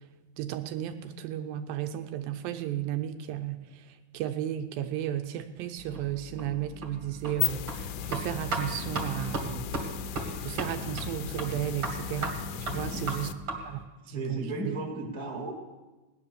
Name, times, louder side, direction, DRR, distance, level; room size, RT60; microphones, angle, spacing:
voice 1, 0.4-9.7 10.4-12.3 12.6-13.3 13.7-13.8 14.1-14.8, right 11 dB, 80° right, 8 dB, 2.5 m, -34 dB
sound 1, 5.8-13.8, right 3 dB, 45° right, 2.3 m, -37 dB
sound 2, 7.2-13.3, left 11 dB, 85° left, 1.8 m, -36 dB
voice 2, 12.5-13.1 13.5-15.5, right 2 dB, 10° left, -2 dB, 0.4 m, -37 dB
17.5 x 10.5 x 6.9 m, 1.2 s
omnidirectional pair, 4.3 m